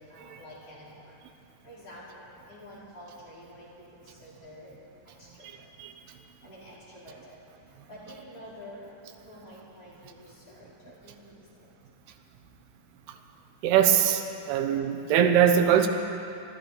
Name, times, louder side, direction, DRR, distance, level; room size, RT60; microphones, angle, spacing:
voice 1, 0.1-1.1 1.6-3.7 3.9-4.7 5.2-5.5 6.4-7.3 7.9-11.3 11.6-11.7, equal, 40° left, -8 dB, 4.5 m, -48 dB
voice 2, 5.4-5.9 13.6-15.9, right 9 dB, 90° right, 6 dB, 2.9 m, -22 dB
25.0 x 13.0 x 4.1 m, 2.7 s
omnidirectional pair, 4.5 m